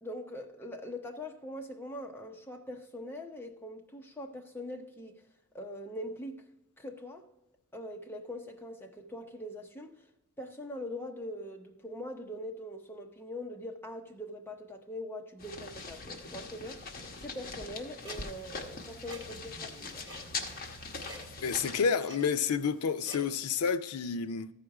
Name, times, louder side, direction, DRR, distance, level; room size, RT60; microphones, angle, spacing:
voice 1, 0.0-5.2 5.5-6.4 6.8-7.3 7.7-10.0 10.4-20.0, left 1 dB, 10° left, 0.8 m, -42 dB
sound 1, 15.4-21.9, left 3 dB, 45° left, 1.1 m, -42 dB
Clock, 18.0-23.5, equal, 20° right, 1.9 m, -52 dB
voice 2, 21.4-24.5, left 6 dB, 80° left, 0.5 m, -29 dB
14.0 x 5.0 x 4.7 m
head